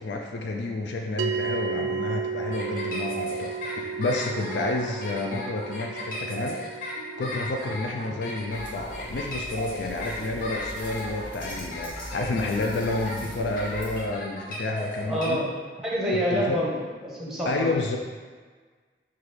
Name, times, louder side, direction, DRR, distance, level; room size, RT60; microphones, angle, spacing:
voice 1, 0.0-6.9 7.2-15.4 16.1-16.6 17.4-18.0, left 2 dB, 80° left, 1 dB, 0.4 m, -30 dB
sound 1, 1.2-11.7, right 6 dB, 85° right, 0.3 m, -35 dB
sound 2, 2.5-15.3, left 1 dB, 50° left, 0.8 m, -36 dB
sound 3, 8.5-14.0, equal, 30° left, 1.2 m, -42 dB
voice 2, 15.1-16.7 17.0-17.7, equal, ahead, -5 dB, 0.7 m, -27 dB
5.7 x 2.3 x 3.3 m, 1.5 s
head